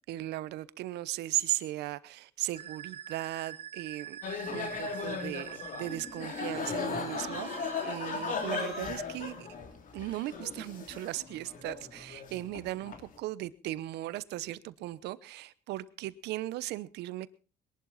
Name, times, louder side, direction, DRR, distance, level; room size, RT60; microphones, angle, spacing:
voice 1, 0.1-9.5 9.9-17.3, right 15 dB, 80° right, 17 dB, 0.9 m, -37 dB
Musical instrument, 2.5-8.9, right 7 dB, 35° right, 1.8 m, -44 dB
sound 1, 4.2-13.1, left 5 dB, 50° left, 2.8 m, -37 dB
21.5 x 11.5 x 4.1 m, 0.35 s
cardioid pair, 110°, 17 cm